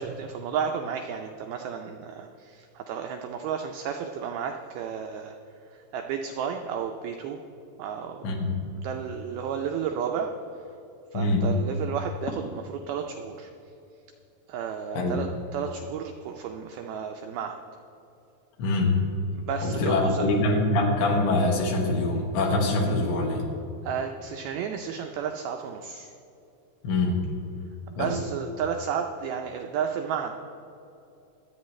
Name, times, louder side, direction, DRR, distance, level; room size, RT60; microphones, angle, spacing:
voice 1, 0.0-5.4 5.7-7.4 7.8-8.2 8.8-10.7 11.1-13.5 14.5-17.6 19.4-20.3 23.8-26.1 27.9-30.4, right 7 dB, 85° right, 4 dB, 2.2 m, -32 dB
voice 2, 8.2-8.5 11.1-11.5 15.0-15.2 18.6-19.0 19.6-23.5 26.8-27.2 28.0-28.2, left 2 dB, 90° left, -1 dB, 4.0 m, -24 dB
24.5 x 8.8 x 3.2 m, 2.8 s
omnidirectional pair, 5.0 m